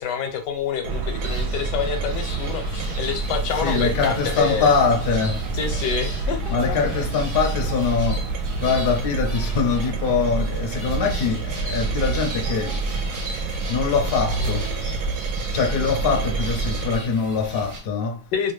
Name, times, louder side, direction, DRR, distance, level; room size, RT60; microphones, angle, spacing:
voice 1, 0.0-4.7 5.5-7.1 18.3-18.5, left 7 dB, 85° left, 1.3 m, -27 dB
sound 1, 0.8-17.0, right 3 dB, 75° right, 1.0 m, -27 dB
sound 2, 1.2-17.8, right 2 dB, 40° right, 0.9 m, -37 dB
voice 2, 3.6-5.4 6.5-8.2 8.6-12.8 13.7-14.7 15.5-18.2, left 5 dB, 60° left, 0.5 m, -23 dB
2.8 x 2.3 x 3.1 m
omnidirectional pair, 1.8 m